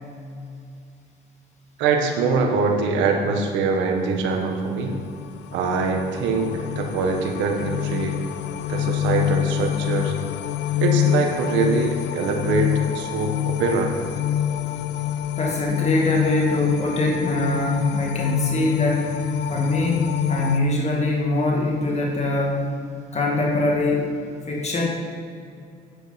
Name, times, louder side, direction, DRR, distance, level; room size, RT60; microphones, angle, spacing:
voice 1, 1.8-4.9 5.5-8.2 8.7-10.1 10.8-13.9, right 4 dB, 85° right, 3 dB, 1.4 m, -23 dB
sound 1, 4.4-20.6, left 11 dB, 75° left, 0.5 m, -26 dB
voice 2, 15.4-19.1 19.5-22.7 23.1-24.1 24.5-24.8, left 2 dB, 35° left, -2 dB, 2.1 m, -23 dB
9.2 x 7.3 x 5.8 m, 2.4 s
supercardioid pair, 70°, 19 cm